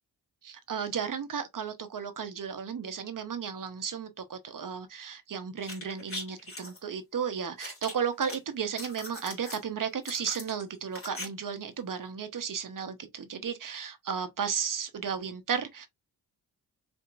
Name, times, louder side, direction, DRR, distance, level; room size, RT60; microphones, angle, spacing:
voice 1, 0.4-15.9, right 7 dB, 55° right, 1.0 m, -34 dB
sound 1, 5.6-6.8 7.6-8.4 8.7-9.6 10.0-11.3 11.5-11.6, left 2 dB, 35° left, 1.9 m, -41 dB
4.3 x 2.9 x 2.5 m
cardioid pair, 65°, 39 cm